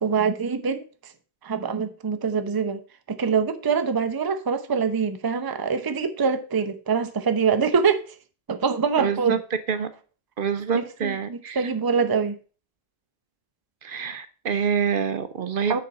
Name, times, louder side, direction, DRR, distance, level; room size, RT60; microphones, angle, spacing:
voice 1, 0.0-1.1 1.4-2.8 3.1-8.2 8.5-9.4 10.7-12.3 15.7-15.8, right 5 dB, 25° right, 0.6 m, -24 dB
voice 2, 9.0-9.4 9.7-9.9 10.4-11.7 13.8-15.8, right 6 dB, 60° right, 0.8 m, -26 dB
6.8 x 4.2 x 6.4 m
omnidirectional pair, 1.1 m